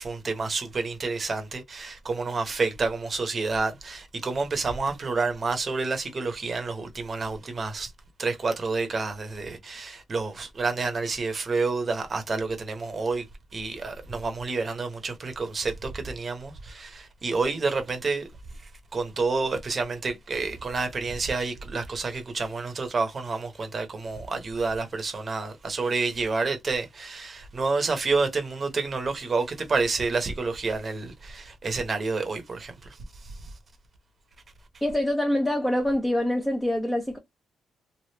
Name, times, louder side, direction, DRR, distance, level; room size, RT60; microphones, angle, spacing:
voice 1, 0.0-7.9 8.2-13.3 13.5-18.3 18.9-33.0 33.2-33.4, right 4 dB, 35° right, 0.8 m, -29 dB
voice 2, 34.8-37.2, left 1 dB, 5° left, 0.6 m, -25 dB
3.3 x 2.4 x 2.8 m
cardioid pair, 125°, 0 cm